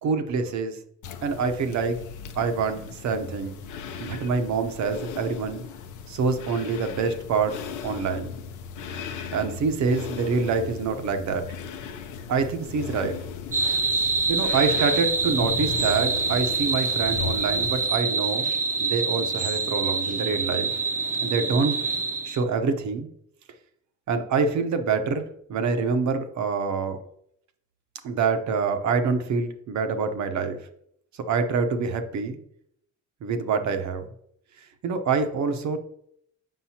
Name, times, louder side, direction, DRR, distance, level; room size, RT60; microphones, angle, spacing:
voice 1, 0.0-0.8 1.2-2.0 2.4-3.6 4.0-5.6 6.1-8.3 9.3-11.4 12.3-13.1 14.3-18.5 18.8-20.7 21.2-21.8 22.2-23.1 24.1-27.0 28.0-30.6 31.3-32.4 33.2-34.0 34.8-35.8, right 5 dB, 65° right, 8 dB, 0.9 m, -26 dB
sound 1, 1.0-17.9, left 6 dB, 80° left, 0.6 m, -37 dB
sound 2, 13.5-22.4, right 4 dB, 25° right, 0.7 m, -26 dB
7.5 x 5.3 x 2.8 m, 0.70 s
cardioid pair, 90°, 30 cm